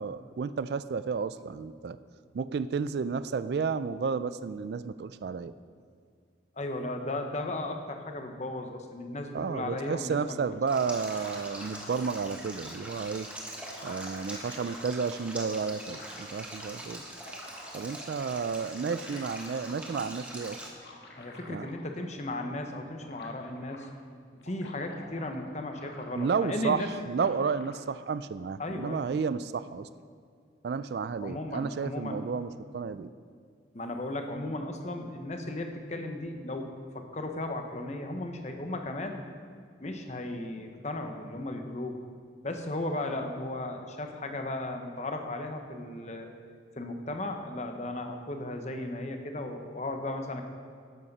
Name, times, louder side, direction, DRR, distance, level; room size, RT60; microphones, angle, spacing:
voice 1, 0.0-2.0 2.3-5.5 9.3-13.3 13.8-17.0 17.7-20.6 21.5-21.7 26.1-29.9 30.6-33.1, right 5 dB, 60° right, 14 dB, 0.3 m, -32 dB
voice 2, 6.6-10.8 21.2-23.9 24.4-26.9 28.6-29.0 31.2-32.2 33.7-36.7 36.9-39.2 39.8-41.9 42.4-46.3 46.8-50.5, left 2 dB, 40° left, 5 dB, 1.0 m, -35 dB
sound 1, 10.5-12.2 13.2-13.3 13.5-14.9 15.6-16.4 16.9-17.9 18.6-19.8 20.7-22.1 22.4-22.5 22.7-23.9 24.3-26.5 26.8-27.8, left 2 dB, 65° left, 1.5 m, -50 dB
Stream, 10.7-20.7, right 1 dB, 5° right, 1.3 m, -43 dB
12.0 x 8.5 x 5.4 m, 2.1 s
head